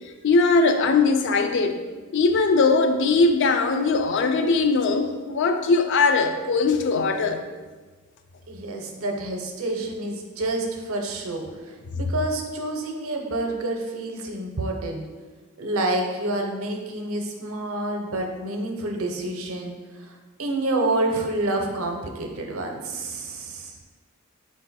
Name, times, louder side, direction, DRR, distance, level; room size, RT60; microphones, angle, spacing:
voice 1, 0.2-1.8 2.1-7.4, left 3 dB, 55° left, 6 dB, 0.3 m, -20 dB
voice 2, 8.5-15.0 15.6-19.7 20.4-23.7, right 2 dB, 75° right, 2 dB, 0.6 m, -28 dB
3.9 x 2.5 x 4.0 m, 1.4 s
head